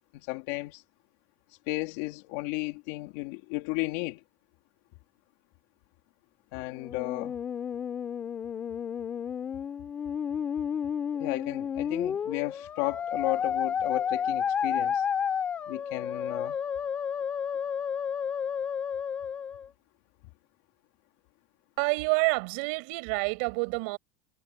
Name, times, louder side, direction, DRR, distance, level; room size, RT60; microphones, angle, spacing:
voice 1, 0.1-0.8 1.7-4.2 6.5-7.4 11.1-15.0 15.7-16.6, left 23 dB, 50° left, 3.2 m, -34 dB
Musical instrument, 6.7-19.7, left 7 dB, 20° left, 3.1 m, -31 dB
voice 2, 21.8-24.0, right 32 dB, 50° right, 7.2 m, -28 dB
supercardioid pair, 180°, 8 cm